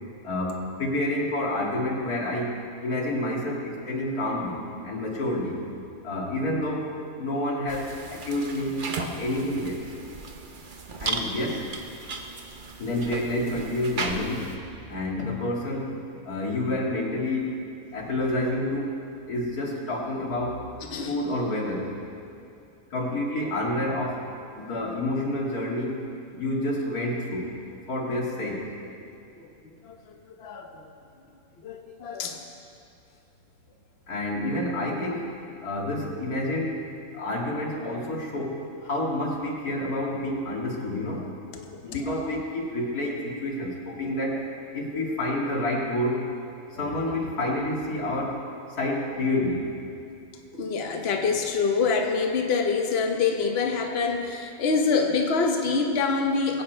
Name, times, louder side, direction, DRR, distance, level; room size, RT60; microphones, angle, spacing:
voice 1, 0.2-5.6 6.0-9.8 11.0-11.6 12.8-14.6 14.9-16.0 16.2-17.5 17.9-18.9 19.3-20.7 21.1-22.0 22.9-24.2 24.6-26.0 26.3-27.5 27.9-28.7 34.1-35.3 35.6-36.8 37.1-41.3 41.8-44.4 44.7-46.3 46.8-48.4 48.8-49.7, left 1 dB, 85° left, -2 dB, 2.5 m, -29 dB
sound 1, 7.7-14.6, right 3 dB, 40° right, 0.9 m, -36 dB
voice 2, 20.8-21.2 29.4-30.9 31.6-32.4 41.5-42.0 42.3-42.4 44.9-45.2 46.8-46.9 50.5-56.6, left 4 dB, 45° left, 3 dB, 1.2 m, -26 dB
22.0 x 8.6 x 4.5 m, 2.5 s
omnidirectional pair, 1.6 m